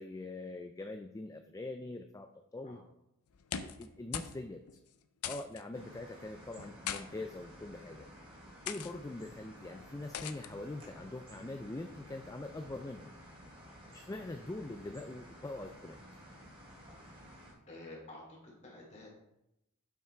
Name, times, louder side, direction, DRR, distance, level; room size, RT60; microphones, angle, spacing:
voice 1, 0.0-2.8 3.6-4.6 5.2-8.1 8.7-13.1 13.9-16.0, left 2 dB, 15° left, 6 dB, 0.3 m, -43 dB
sound 1, 3.3-3.9 4.1-4.4 4.7-4.8 5.2-5.6 6.6-7.0 7.8-8.0 8.7-8.9 10.1-10.5, left 9 dB, 80° left, 0.5 m, -40 dB
sound 2, 5.7-17.5, equal, 25° right, 2.8 m, -53 dB
voice 2, 17.7-19.1, left 2 dB, 30° left, -3 dB, 2.9 m, -51 dB
7.5 x 5.8 x 4.4 m, 0.86 s
head